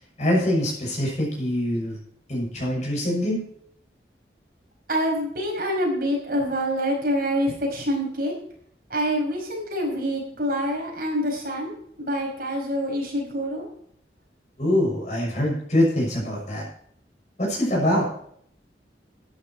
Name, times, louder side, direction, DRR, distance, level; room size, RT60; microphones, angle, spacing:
voice 1, 0.2-2.0 2.3-3.4 14.6-16.6 17.4-18.1, left 1 dB, 40° left, -1 dB, 6.6 m, -24 dB
voice 2, 4.9-8.3 8.9-13.6, equal, 55° right, 0 dB, 5.1 m, -26 dB
13.0 x 10.5 x 4.6 m, 0.64 s
head